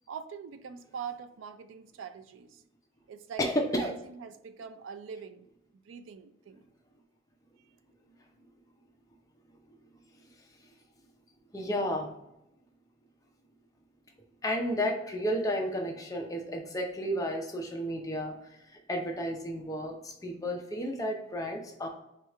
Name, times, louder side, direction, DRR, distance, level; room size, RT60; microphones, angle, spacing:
voice 1, 0.1-2.6 3.1-5.5 5.8-6.6, right 7 dB, 90° right, 0.4 m, -43 dB
voice 2, 3.4-3.9 11.5-12.1 14.4-21.9, equal, 20° left, 0.5 m, -32 dB
4.6 x 2.4 x 3.1 m
head